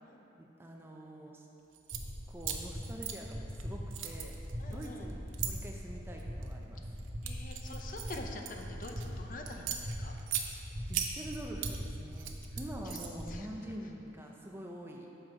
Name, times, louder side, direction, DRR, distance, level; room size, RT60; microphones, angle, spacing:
voice 1, 0.4-1.5 2.3-4.3 4.7-6.9 10.9-15.1, right 1 dB, 10° right, 0 dB, 0.5 m, -45 dB
sound 1, 1.7-2.0 2.4-3.6 3.9-5.5 6.2-6.5 7.0-9.1 9.5-10.5 10.9-11.8 12.1-13.3, right 10 dB, 80° right, 0.6 m, -38 dB
sound 2, 1.9-13.4, equal, 40° right, 1.2 m, -42 dB
voice 2, 4.6-5.1 7.2-10.1 12.9-13.0 13.3-13.5, left 2 dB, 45° left, 3 dB, 0.5 m, -46 dB
6.7 x 5.9 x 4.8 m, 2.8 s
head